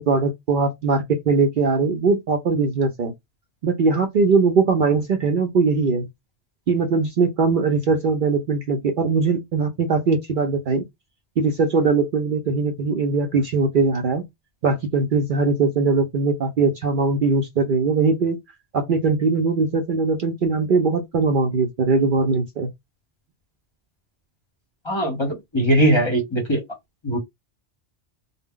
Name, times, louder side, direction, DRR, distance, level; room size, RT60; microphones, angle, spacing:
voice 1, 0.0-3.1 3.6-6.1 6.7-10.8 11.4-14.3 14.6-18.4 18.7-22.7, right 4 dB, 60° right, 0.6 m, -20 dB
voice 2, 24.8-26.6 27.0-27.2, right 1 dB, 25° left, 0.8 m, -20 dB
2.1 x 2.0 x 3.6 m
omnidirectional pair, 1.2 m